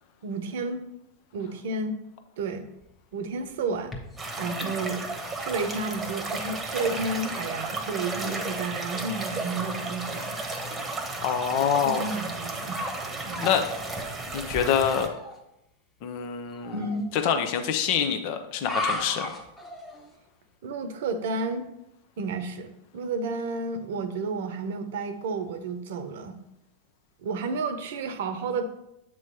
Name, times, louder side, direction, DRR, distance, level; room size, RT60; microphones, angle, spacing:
voice 1, 0.2-0.8 1.3-1.9 2.4-2.6 3.1-3.9 4.4-5.1 5.4-10.4 11.8-12.8 13.2-13.5 16.7-17.1 20.6-21.7 22.2-26.4 27.2-28.6, right 3 dB, 70° right, 8 dB, 0.8 m, -31 dB
sound 1, 2.8-4.4 5.1-5.2 5.9-6.0 6.6-6.9 7.3-7.4 7.6-7.8 8.4-8.5 11.5-11.7 12.3-13.0 13.2-13.7 15.1-15.4 16.5-17.0 18.5-20.1, left 2 dB, 15° left, 1.2 m, -36 dB
sound 2, 4.2-15.1, right 2 dB, 15° right, 1.1 m, -33 dB
voice 2, 11.2-12.0 13.4-13.6 14.3-15.1 16.0-16.8 17.1-19.3, left 8 dB, 55° left, 6 dB, 0.8 m, -26 dB
7.7 x 3.1 x 5.6 m, 0.86 s
hypercardioid pair, 105°, 0 cm